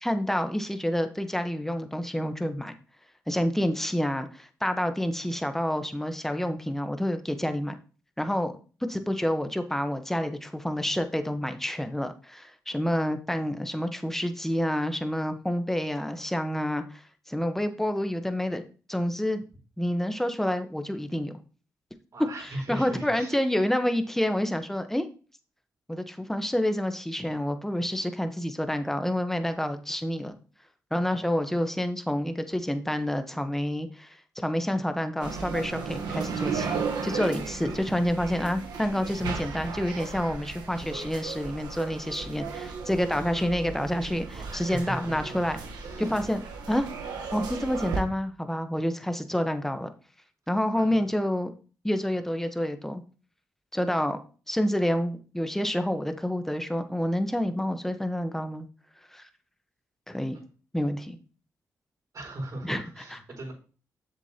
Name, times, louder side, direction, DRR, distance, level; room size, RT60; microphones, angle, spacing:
voice 1, 0.0-2.7 3.3-7.7 8.2-8.5 8.9-17.0 17.3-18.6 18.9-19.4 19.8-21.3 22.4-25.1 25.9-30.3 30.9-45.6 46.0-46.9 47.3-49.9 50.5-51.5 51.8-53.0 53.7-54.2 54.5-58.7 59.1-59.2 60.1-60.4 60.7-61.2 62.6-62.8, equal, 5° left, 1.0 m, -28 dB
voice 2, 22.1-23.4 44.3-46.3 50.7-51.0 62.1-63.5, right 1 dB, 60° right, 4.1 m, -39 dB
sound 1, 35.2-48.0, right 5 dB, 85° right, 1.2 m, -35 dB
7.3 x 6.6 x 2.9 m
cardioid pair, 60°, 7 cm